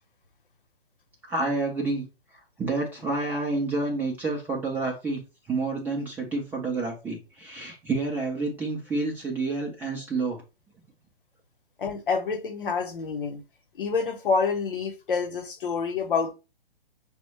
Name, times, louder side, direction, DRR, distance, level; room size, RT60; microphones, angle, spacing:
voice 1, 1.3-2.0 2.6-5.2 5.5-10.4, right 3 dB, 5° right, 0.5 m, -29 dB
voice 2, 11.8-13.4 13.7-16.3, left 5 dB, 60° left, 0.9 m, -27 dB
5.9 x 2.1 x 3.1 m
figure-of-eight pair, 120°, 30 cm